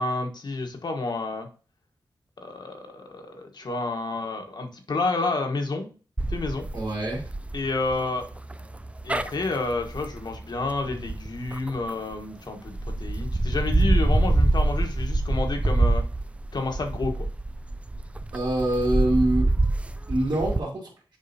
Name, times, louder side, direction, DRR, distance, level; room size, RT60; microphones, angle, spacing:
voice 1, 0.0-1.5 2.4-5.9 6.3-6.6 7.5-8.3 9.0-16.0 16.5-17.3, left 3 dB, 60° left, 4 dB, 1.4 m, -30 dB
sound 1, 6.2-12.2 12.7-20.6, right 2 dB, 15° right, 0.4 m, -26 dB
voice 2, 6.7-7.3 18.3-19.5 20.1-20.9, right 1 dB, 60° right, -6 dB, 2.4 m, -25 dB
7.4 x 4.8 x 2.8 m, 0.37 s
cardioid pair, 75°, 8 cm